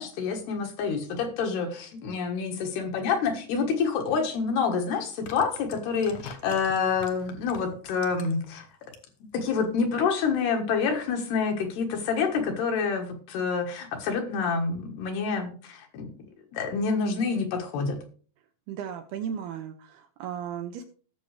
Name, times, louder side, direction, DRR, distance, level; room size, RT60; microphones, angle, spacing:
voice 1, 0.0-8.7 9.3-16.1 16.5-18.0, left 5 dB, 70° left, 3 dB, 3.2 m, -27 dB
sound 1, 4.1-4.2 5.0-8.5 8.8-9.3 9.6-9.7, left 6 dB, 90° left, 1.7 m, -44 dB
voice 2, 18.7-20.8, right 8 dB, 75° right, 6 dB, 2.5 m, -35 dB
18.5 x 6.9 x 3.3 m, 0.41 s
omnidirectional pair, 5.2 m